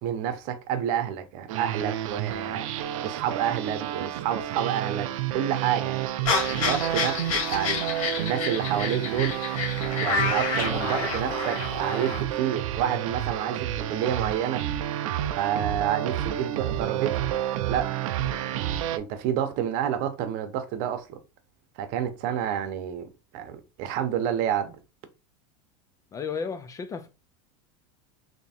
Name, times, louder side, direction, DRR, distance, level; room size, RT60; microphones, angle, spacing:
voice 1, 0.0-7.8 8.2-9.4 10.0-14.6 15.4-17.3 17.7-17.9 18.2-18.6 18.9-21.2 21.8-24.8, right 9 dB, 50° right, 0.9 m, -29 dB
sound 1, 1.5-19.0, right 12 dB, 80° right, 0.5 m, -30 dB
sound 2, 6.3-12.2, left 5 dB, 80° left, 1.7 m, -29 dB
voice 2, 26.1-27.1, left 6 dB, 20° left, 0.4 m, -34 dB
3.5 x 2.9 x 4.3 m
supercardioid pair, 135°, 17 cm